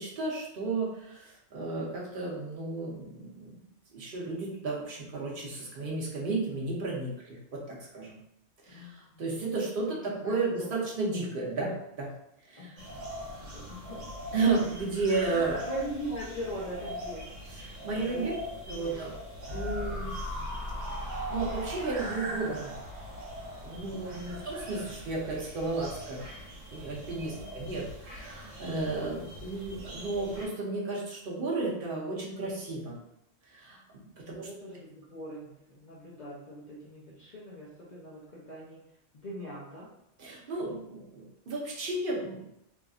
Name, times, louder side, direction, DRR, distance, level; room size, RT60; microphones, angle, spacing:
voice 1, 0.0-3.5 3.9-8.2 8.6-12.1 12.5-12.8 14.3-15.6 17.5-18.3 18.7-19.1 19.5-20.1 20.9-22.7 23.6-26.2 26.7-33.0 33.5-33.8 34.2-34.5 40.2-42.5, right 3 dB, 50° right, -3 dB, 0.9 m, -33 dB
voice 2, 8.7-9.5 10.2-10.7 12.6-13.0 13.5-14.0 15.3-17.2 18.0-18.3 18.7-19.0 23.7-24.0 27.1-27.5 34.4-38.8 39.1-39.9, right 1 dB, 50° left, -6 dB, 0.6 m, -41 dB
sound 1, 12.8-30.5, equal, 85° right, 1.2 m, -42 dB
sound 2, 19.5-24.7 25.0-25.1, equal, 30° right, 0.6 m, -39 dB
3.3 x 2.5 x 2.4 m, 0.80 s
omnidirectional pair, 1.3 m